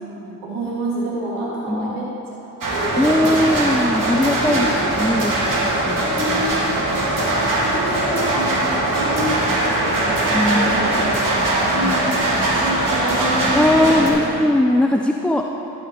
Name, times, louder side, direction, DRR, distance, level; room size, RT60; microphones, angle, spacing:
voice 1, 0.0-2.1 2.4-3.5 4.5-4.9 5.9-6.7 7.2-10.0 10.4-11.3 11.7-14.2, right 1 dB, 85° right, -6 dB, 2.2 m, -28 dB
voice 2, 1.7-2.1 3.0-4.7 5.0-6.4 10.3-10.7 11.8-11.9 13.5-15.4, left 1 dB, 5° left, 2 dB, 0.4 m, -19 dB
sound 1, 2.6-14.1, right 1 dB, 50° right, 2.2 m, -21 dB
14.0 x 5.1 x 4.3 m, 2.9 s
hypercardioid pair, 45°, 41 cm